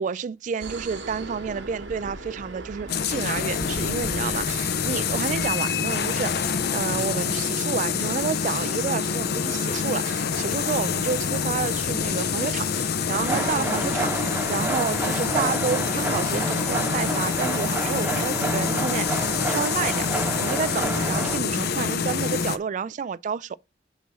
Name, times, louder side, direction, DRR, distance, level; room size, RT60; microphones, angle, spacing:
voice 1, 0.0-23.6, right 6 dB, 45° right, 0.3 m, -30 dB
sound 1, 0.6-5.7, right 2 dB, 75° right, 1.3 m, -38 dB
sound 2, 2.9-22.6, left 6 dB, 60° left, 0.5 m, -26 dB
sound 3, 13.1-21.4, right 2 dB, 10° right, 0.9 m, -29 dB
6.1 x 4.1 x 6.0 m
head